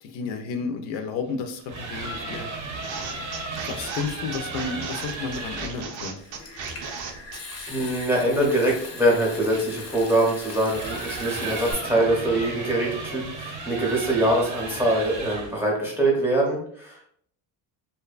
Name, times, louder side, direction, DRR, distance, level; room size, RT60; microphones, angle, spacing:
voice 1, 0.0-2.5 3.5-6.2, left 5 dB, 85° left, 7 dB, 0.5 m, -32 dB
sound 1, 1.5-5.8 8.4-15.6, right 3 dB, 45° right, 0.6 m, -35 dB
sound 2, 2.8-8.1, right 5 dB, 85° right, 0.6 m, -36 dB
Water tap faucet / Sink (filling or washing) / Trickle dribble, 6.2-11.7, left 3 dB, 35° left, 0.5 m, -40 dB
voice 2, 7.7-17.1, right 1 dB, 5° right, -3 dB, 0.6 m, -23 dB
2.6 x 2.2 x 2.3 m, 0.62 s
cardioid pair, 130°, 44 cm